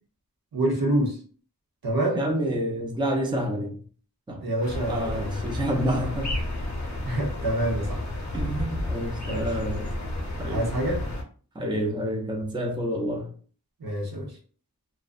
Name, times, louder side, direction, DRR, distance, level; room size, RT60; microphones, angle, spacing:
voice 1, 0.5-1.2 1.8-2.2 4.4-5.4 7.1-8.0 9.2-9.5 10.5-11.0 13.8-14.3, right 1 dB, 75° right, 0.8 m, -26 dB
voice 2, 2.1-3.8 4.3-4.4 4.9-6.4 8.3-9.9 10.4-10.7 11.6-13.3, equal, 15° right, 0.4 m, -28 dB
sound 1, 4.6-11.2, left 1 dB, 50° left, 0.7 m, -31 dB
2.5 x 2.1 x 2.4 m
wide cardioid pair, 65°, 37 cm